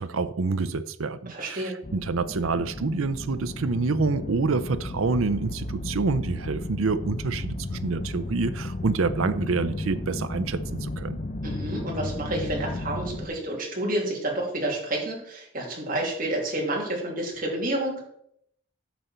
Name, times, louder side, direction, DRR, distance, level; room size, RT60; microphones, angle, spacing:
voice 1, 0.0-11.2, right 4 dB, 80° right, 0.6 m, -27 dB
voice 2, 1.3-1.7 11.4-18.0, right 1 dB, 40° right, 3.0 m, -29 dB
sound 1, 1.8-13.3, left 2 dB, 35° left, 0.7 m, -34 dB
10.5 x 6.8 x 4.4 m
head